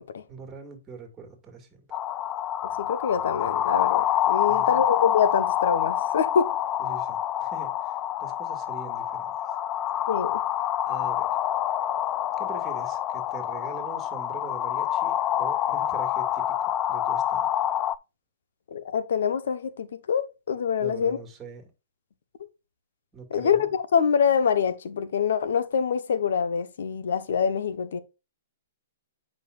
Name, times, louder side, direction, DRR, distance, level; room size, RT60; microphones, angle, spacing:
voice 1, 0.3-1.9 4.5-4.7 6.8-9.6 10.9-11.4 12.4-17.5 20.8-21.7 23.1-23.7, right 5 dB, 15° right, 2.2 m, -43 dB
sound 1, 1.9-18.0, left 11 dB, 25° left, 0.3 m, -27 dB
voice 2, 2.8-6.5 10.1-10.4 18.7-21.2 23.3-28.0, left 7 dB, 75° left, 1.0 m, -25 dB
8.8 x 5.6 x 2.5 m
hypercardioid pair, 145°, 0 cm